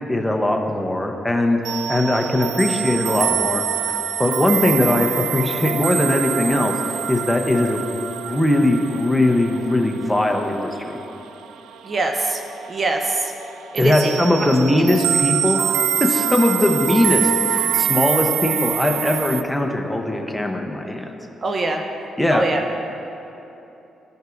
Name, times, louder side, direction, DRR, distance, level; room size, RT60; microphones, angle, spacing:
voice 1, 0.1-1.6 1.9-3.6 4.2-7.8 8.2-11.0 13.8-21.1 22.2-22.5, left 1 dB, 5° left, 2 dB, 0.9 m, -20 dB
sound 1, 1.6-12.1 12.3-12.7 13.0-19.4, right 9 dB, 85° right, 0.3 m, -25 dB
voice 2, 11.8-12.4 12.7-13.3 13.7-14.1 21.4-21.8 22.3-22.6, right 2 dB, 45° right, 3 dB, 0.7 m, -23 dB
15.0 x 5.3 x 2.6 m, 3.0 s
supercardioid pair, 65°, 0 cm